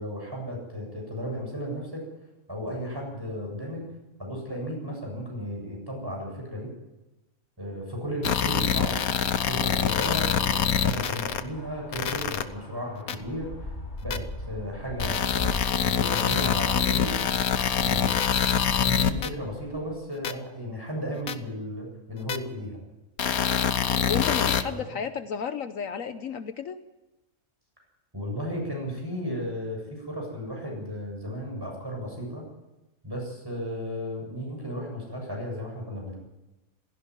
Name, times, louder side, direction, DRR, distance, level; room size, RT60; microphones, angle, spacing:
voice 1, 0.0-2.0 2.5-3.9 4.2-6.7 7.6-9.0 9.4-13.8 14.0-17.2 17.8-18.2 18.5-22.8 24.2-25.0 28.1-32.4 33.0-36.2, equal, 15° right, -1 dB, 7.5 m, -34 dB
sound 1, 8.2-11.4 11.9-12.4 13.1-13.2 14.1-14.2 15.0-19.3 20.2-20.3 21.3-21.4 22.3-22.4 23.2-24.6, left 8 dB, 85° left, 1.5 m, -25 dB
sound 2, 11.1-19.9, left 1 dB, 35° left, 3.2 m, -39 dB
voice 2, 24.0-26.8, left 7 dB, 65° left, 10 dB, 1.3 m, -32 dB
16.5 x 16.0 x 9.9 m, 1.0 s
omnidirectional pair, 1.5 m